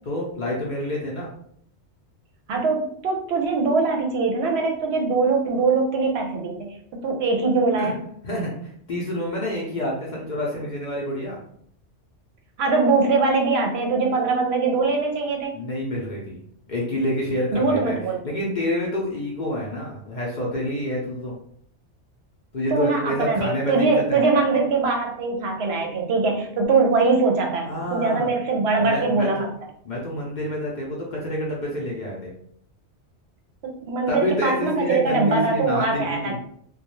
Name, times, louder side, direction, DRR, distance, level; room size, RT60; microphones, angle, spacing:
voice 1, 0.0-1.3 7.8-7.9 8.2-11.4 15.5-16.4 16.7-18.0 18.2-21.3 22.5-24.2 27.6-28.3 28.8-29.3 29.8-32.3 34.1-36.4, left 1 dB, 50° left, -3 dB, 0.6 m, -28 dB
voice 2, 2.5-6.7 7.0-8.0 12.6-15.5 17.5-18.2 22.7-29.5 33.6-36.4, right 4 dB, 70° right, 2 dB, 0.8 m, -22 dB
2.3 x 2.2 x 2.9 m, 0.66 s
omnidirectional pair, 1.2 m